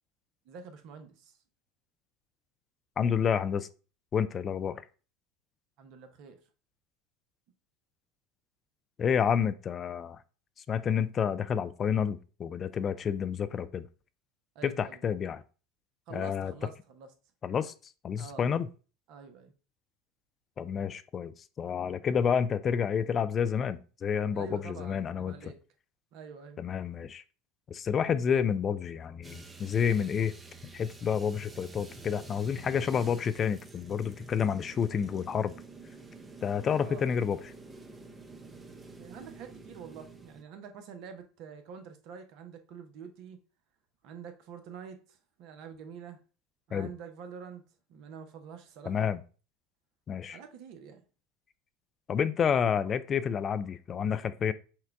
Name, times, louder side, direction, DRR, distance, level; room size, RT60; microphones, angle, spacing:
voice 1, 0.4-1.4 5.8-6.4 14.5-15.0 16.1-17.1 18.2-18.5 19.1-19.5 24.3-25.6 26.1-26.6 36.8-37.0 39.0-43.4 44.0-46.2 46.7-47.6 47.9-49.1 50.3-51.0, right 7 dB, 60° right, 0.8 m, -46 dB
voice 2, 3.0-3.7 4.1-4.8 9.0-10.2 10.7-13.9 14.6-15.4 16.1-16.5 17.4-17.7 18.0-18.7 20.6-25.5 26.6-27.2 27.7-30.3 30.6-35.5 36.4-37.4 46.7-46.9 48.9-49.2 50.1-50.4 52.1-54.5, left 7 dB, 35° left, 0.3 m, -29 dB
sound 1, 29.2-40.4, right 3 dB, 20° right, 0.7 m, -49 dB
5.8 x 2.3 x 3.4 m
hypercardioid pair, 80°, 0 cm